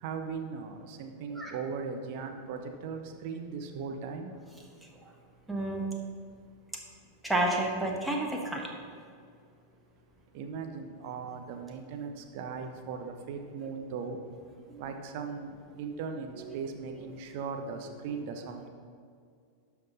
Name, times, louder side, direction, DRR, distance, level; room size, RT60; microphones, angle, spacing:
voice 1, 0.0-4.4 10.3-14.2 14.8-18.7, right 5 dB, 45° right, 5 dB, 0.9 m, -38 dB
voice 2, 5.5-5.8 7.2-8.7, right 1 dB, 5° right, -1 dB, 1.3 m, -30 dB
12.0 x 5.9 x 4.0 m, 2.2 s
figure-of-eight pair, 90°, 0 cm